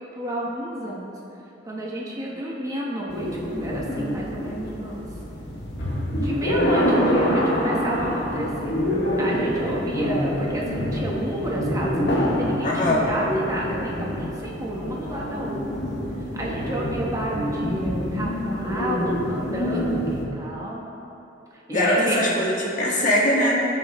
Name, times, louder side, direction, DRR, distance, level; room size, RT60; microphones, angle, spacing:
voice 1, 0.1-1.1 1.6-5.1 6.1-8.7 9.2-15.6 16.2-20.8 21.5-22.3, right 1 dB, 20° right, -4 dB, 1.1 m, -30 dB
sound 1, 3.1-20.3, equal, 60° left, 1.9 m, -26 dB
voice 2, 12.6-13.0 21.7-23.5, left 1 dB, 45° left, -4 dB, 1.7 m, -22 dB
18.0 x 6.9 x 3.1 m, 2.9 s
head